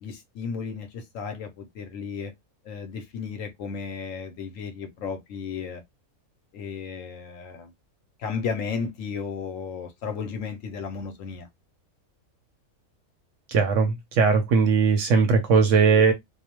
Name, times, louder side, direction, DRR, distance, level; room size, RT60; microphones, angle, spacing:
voice 1, 0.0-2.3 2.7-5.8 6.5-7.7 8.2-11.5, left 5 dB, 70° left, 0.9 m, -34 dB
voice 2, 13.5-16.1, right 5 dB, 70° right, 0.8 m, -19 dB
2.4 x 2.0 x 2.8 m
omnidirectional pair, 1.6 m